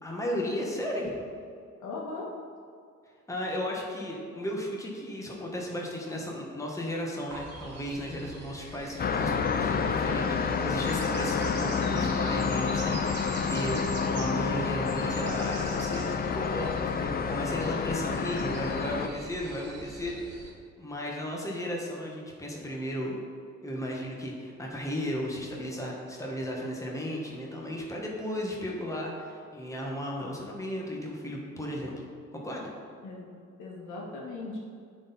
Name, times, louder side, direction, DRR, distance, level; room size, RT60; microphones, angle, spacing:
voice 1, 0.0-1.2 3.3-23.2 23.6-31.9 32.3-32.7, equal, 10° left, -2 dB, 1.4 m, -35 dB
voice 2, 1.8-2.3 33.0-34.6, left 3 dB, 80° left, -3 dB, 1.7 m, -39 dB
sound 1, 7.3-20.5, right 3 dB, 55° right, 1.7 m, -44 dB
sound 2, 9.0-19.1, left 6 dB, 30° left, 0.5 m, -29 dB
9.4 x 4.3 x 4.1 m, 2.2 s
cardioid pair, 90°, 30 cm